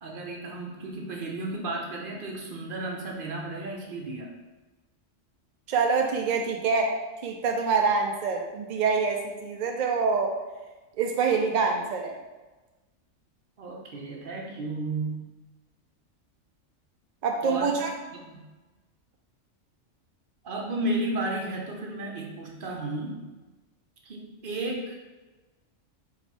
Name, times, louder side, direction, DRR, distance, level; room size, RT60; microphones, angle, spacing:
voice 1, 0.0-4.3 13.6-15.3 17.4-17.8 18.1-18.4 20.4-23.2 24.0-25.0, right 2 dB, 50° right, 0 dB, 0.8 m, -33 dB
voice 2, 5.7-7.0 7.2-10.4 11.0-12.2 17.2-17.9, right 5 dB, 65° right, 2 dB, 0.4 m, -25 dB
4.2 x 2.6 x 4.5 m, 1.2 s
omnidirectional pair, 1.3 m